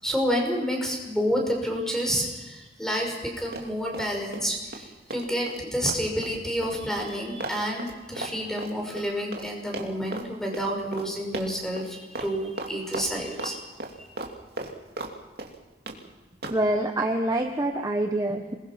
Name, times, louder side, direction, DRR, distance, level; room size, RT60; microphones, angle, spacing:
voice 1, 0.0-13.7 14.0-14.1, equal, 5° left, 0 dB, 5.6 m, -29 dB
Run, 3.5-4.5 4.7-9.5 9.7-10.3 10.5-10.7 10.9-11.1 11.3-11.9 12.2-12.3 12.6-13.5 13.8-15.1 15.4-16.0 16.4-16.6, right 2 dB, 60° right, 2.8 m, -36 dB
voice 2, 16.5-18.6, right 1 dB, 20° right, 3 dB, 1.2 m, -26 dB
27.5 x 21.0 x 6.0 m, 1.2 s
head